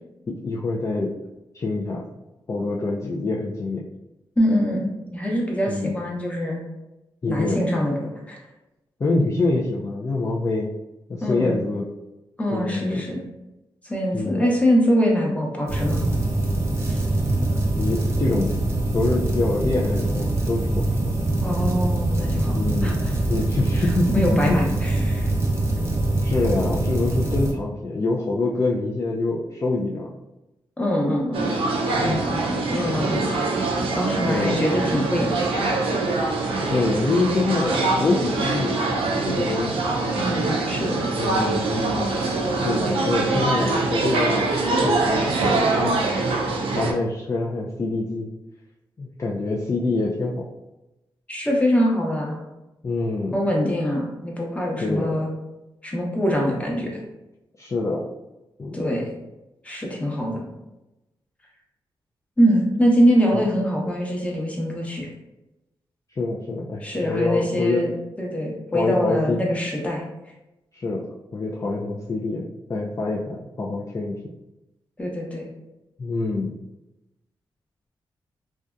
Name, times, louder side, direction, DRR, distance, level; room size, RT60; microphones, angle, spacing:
voice 1, 0.3-1.1 1.5-2.1 2.5-3.8 5.7-5.9 7.2-7.6 9.0-10.7 11.1-11.9 12.5-13.0 14.1-14.4 17.8-18.6 18.9-21.1 22.5-23.0 23.3-24.6 26.2-30.1 32.0-32.2 34.3-34.6 36.6-38.8 39.3-39.8 41.2-42.0 42.6-44.5 44.8-45.3 45.8-46.0 46.8-48.3 49.0-50.4 52.8-53.4 54.8-55.2 57.6-58.0 58.6-58.8 63.3-63.4 66.2-67.8 68.7-69.4 70.7-71.1 71.3-74.2 76.0-76.6, left 3 dB, 35° left, -3 dB, 0.3 m, -25 dB
voice 2, 4.4-6.6 7.3-8.4 11.2-11.6 12.4-13.2 13.8-16.0 16.9-17.0 21.4-23.1 23.7-25.3 30.8-31.5 31.8-32.2 32.7-33.5 33.9-35.4 35.6-35.8 40.2-41.0 51.3-52.4 53.3-55.3 55.8-57.0 58.7-59.1 59.6-60.5 62.4-65.1 66.8-70.0 75.0-75.5, equal, 15° left, -2 dB, 0.8 m, -23 dB
sound 1, 15.7-27.5, right 2 dB, 30° right, 0.7 m, -23 dB
sound 2, 31.3-46.9, right 3 dB, 85° right, 0.4 m, -24 dB
2.6 x 2.2 x 2.3 m, 0.95 s
cardioid pair, 55°, 9 cm